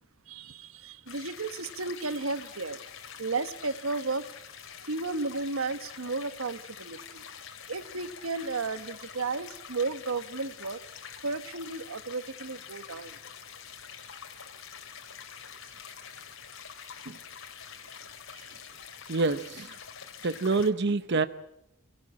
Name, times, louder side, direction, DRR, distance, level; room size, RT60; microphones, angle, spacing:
voice 1, 0.3-2.8 3.2-4.3 4.9-7.2 7.7-10.8 11.2-13.2 18.3-18.5, right 3 dB, 80° right, 12 dB, 1.2 m, -33 dB
sound 1, 1.1-20.7, left 7 dB, 70° left, 3.1 m, -46 dB
voice 2, 19.1-19.8 20.2-21.3, right 3 dB, 55° right, 11 dB, 0.8 m, -27 dB
27.0 x 18.0 x 8.7 m, 0.83 s
head